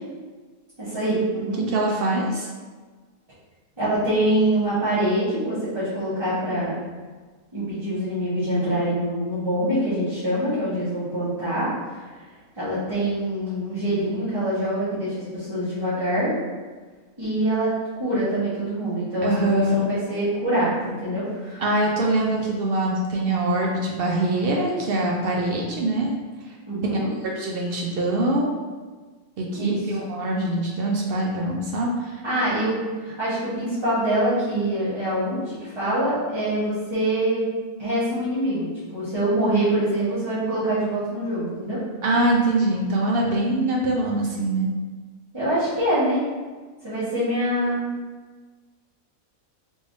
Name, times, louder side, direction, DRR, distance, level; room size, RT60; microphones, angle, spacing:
voice 1, 0.8-1.6 3.8-6.8 7.5-12.1 12.5-16.3 17.2-17.7 18.0-21.6 26.7-27.1 29.5-29.8 32.2-32.8 33.0-37.5 37.8-41.8 45.3-46.2 46.8-47.8, right 1 dB, 20° right, -14 dB, 1.0 m, -24 dB
voice 2, 1.7-2.5 19.2-19.8 21.6-26.1 27.3-28.5 29.4-32.2 42.0-44.7, right 2 dB, 65° right, -2 dB, 0.6 m, -23 dB
3.6 x 3.3 x 2.5 m, 1.4 s
omnidirectional pair, 1.5 m